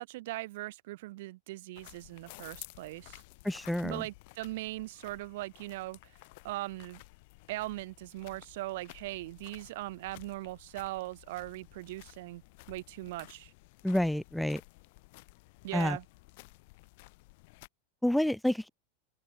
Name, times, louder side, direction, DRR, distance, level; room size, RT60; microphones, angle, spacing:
voice 1, 0.0-3.2 3.8-6.0 6.4-7.0 7.5-12.4 12.7-13.5 15.6-16.0, right 18 dB, 65° right, 2.9 m, -40 dB
sound 1, 1.7-17.7, left 25 dB, 60° left, 7.1 m, -54 dB
voice 2, 3.4-4.0 13.8-14.6 15.7-16.0 18.0-18.7, left 1 dB, 5° left, 0.6 m, -29 dB
hypercardioid pair, 95°, 0 cm